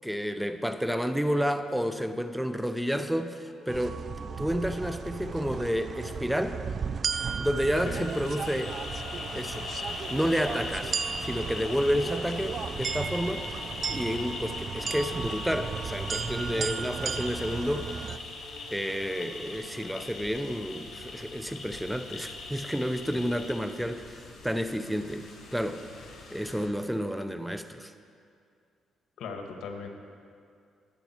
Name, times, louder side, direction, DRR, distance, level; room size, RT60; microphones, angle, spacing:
voice 1, 0.0-4.0 4.4-6.6 7.4-8.8 9.3-9.7 10.1-13.5 13.9-18.1 18.7-25.3 25.5-25.8 26.3-27.9, equal, ahead, 9 dB, 0.6 m, -30 dB
sound 1, 2.5-20.1, left 1 dB, 45° left, 2.2 m, -52 dB
sound 2, 3.7-18.2, right 6 dB, 50° right, 0.4 m, -35 dB
sound 3, 7.6-26.7, left 3 dB, 65° left, 3.7 m, -40 dB
voice 2, 29.2-29.9, left 4 dB, 80° left, 3 dB, 1.5 m, -37 dB
21.0 x 8.3 x 4.5 m, 2.3 s
cardioid pair, 90°, 0 cm